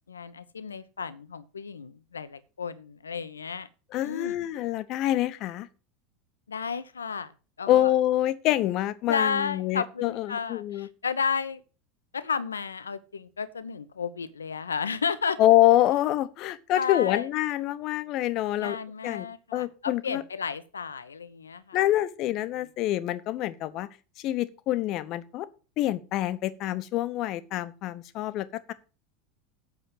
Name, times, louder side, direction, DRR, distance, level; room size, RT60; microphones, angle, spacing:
voice 1, 0.1-3.7 4.0-4.5 6.5-7.3 7.6-7.9 9.1-11.6 12.1-15.4 16.7-17.3 18.6-21.8, left 6 dB, 80° left, 0.8 m, -32 dB
voice 2, 3.9-5.7 7.7-10.9 15.4-18.8 19.0-19.3 19.5-20.2 21.7-23.9 24.2-25.5 25.8-28.7, left 14 dB, 45° left, 0.9 m, -26 dB
8.2 x 6.3 x 7.7 m
figure-of-eight pair, 80°, 0 cm